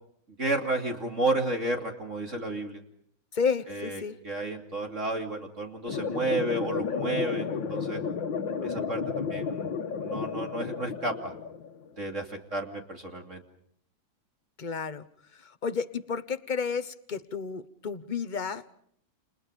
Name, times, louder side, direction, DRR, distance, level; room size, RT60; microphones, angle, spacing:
voice 1, 0.4-2.8 3.7-8.0 8.6-9.7 10.0-11.3 12.0-13.4, right 2 dB, 35° right, 2 dB, 3.1 m, -32 dB
voice 2, 3.3-4.1 14.6-15.1 15.4-18.6, left 5 dB, 30° left, 12 dB, 0.9 m, -31 dB
sound 1, 5.9-11.9, left 6 dB, 65° left, 2.1 m, -32 dB
30.0 x 29.5 x 5.3 m, 0.65 s
omnidirectional pair, 2.2 m